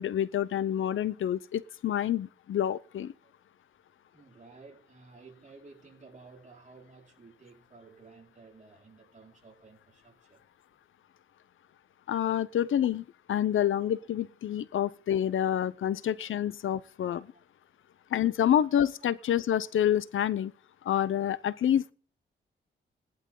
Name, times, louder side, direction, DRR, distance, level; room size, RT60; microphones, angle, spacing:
voice 1, 0.0-3.1 12.1-17.3 18.1-20.5 20.8-21.9, left 10 dB, 80° left, 0.7 m, -28 dB
voice 2, 4.1-10.5 13.6-13.7 17.3-17.4, right 4 dB, 35° right, 4.9 m, -54 dB
18.0 x 11.5 x 3.8 m
wide cardioid pair, 110°, 20 cm